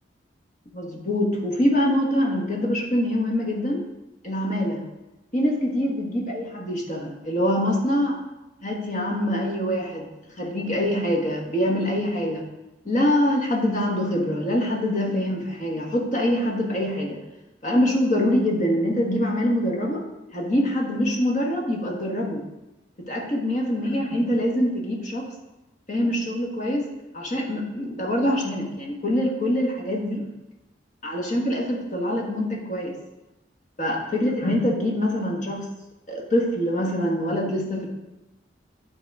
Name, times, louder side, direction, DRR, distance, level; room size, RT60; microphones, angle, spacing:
voice 1, 0.7-3.8 4.2-4.8 5.3-8.2 8.6-10.1 10.4-12.4 12.8-17.2 17.6-20.0 20.3-22.4 23.0-25.3 25.9-26.9 27.1-30.2 31.0-32.9 33.8-35.7 36.1-37.9, left 1 dB, 40° left, 0 dB, 1.5 m, -24 dB
10.0 x 3.8 x 4.7 m, 1.0 s
head